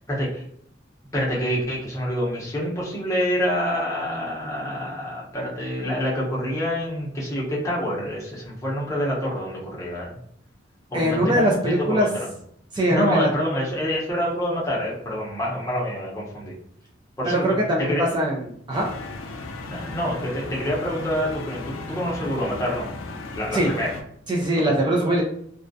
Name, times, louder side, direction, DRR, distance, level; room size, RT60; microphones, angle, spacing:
voice 1, 0.1-0.4 1.1-10.1 10.9-12.3 12.7-16.5 17.2-18.1 19.7-22.9 23.3-23.9 24.6-24.7, equal, 15° left, -5 dB, 0.7 m, -27 dB
voice 2, 10.9-12.1 12.7-13.3 17.2-18.9 23.5-23.7 24.3-25.2, equal, 25° right, -3 dB, 0.3 m, -22 dB
sound 1, 18.7-24.0, left 3 dB, 90° left, 0.4 m, -35 dB
2.3 x 2.1 x 2.5 m, 0.69 s
head